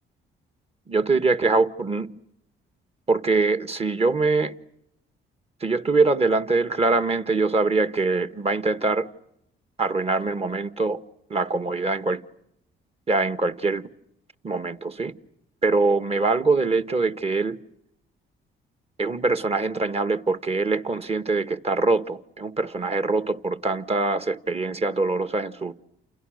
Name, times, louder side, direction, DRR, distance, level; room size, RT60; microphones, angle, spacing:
voice 1, 0.9-2.1 3.1-4.5 5.6-9.1 9.8-11.0 11.3-12.2 13.1-13.8 14.4-15.1 15.6-17.6 19.0-25.7, right 3 dB, 30° right, 1.6 m, -23 dB
29.5 x 29.0 x 6.5 m
cardioid pair, 90°, 20 cm